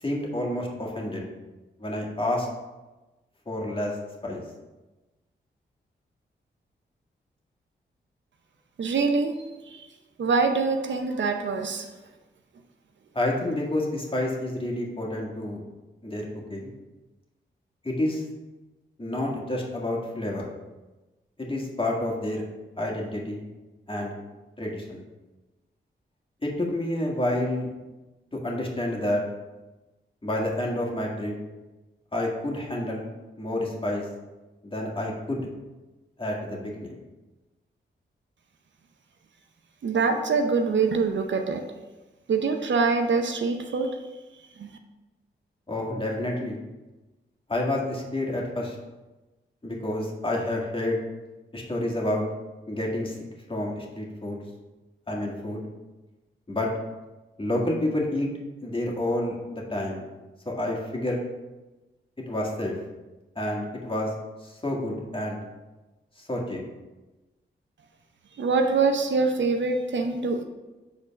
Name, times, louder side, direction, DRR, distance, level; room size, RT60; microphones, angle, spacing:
voice 1, 0.0-1.2 1.8-2.5 3.5-4.0 4.2-4.4 13.1-15.6 16.0-16.7 17.8-18.2 19.0-20.5 21.4-22.4 22.8-23.4 23.9-24.2 24.6-25.0 26.4-27.7 28.3-29.2 30.2-31.4 32.1-33.1 33.4-34.0 34.6-35.5 36.2-37.0 45.7-46.6 47.5-48.8 49.6-51.0 51.5-52.2 52.7-53.1 53.5-54.4 55.1-55.6 56.5-56.7 57.4-58.3 58.6-60.0 60.5-61.2 62.3-62.8 63.4-64.1 64.4-65.4 66.3-66.6, left 1 dB, 25° left, -2 dB, 1.9 m, -29 dB
voice 2, 8.8-9.9 10.2-11.9 39.8-41.6 42.3-44.0 44.6-44.7 68.4-70.4, right 4 dB, 65° right, 5 dB, 0.7 m, -24 dB
5.4 x 3.9 x 5.8 m, 1.1 s
cardioid pair, 50°, 20 cm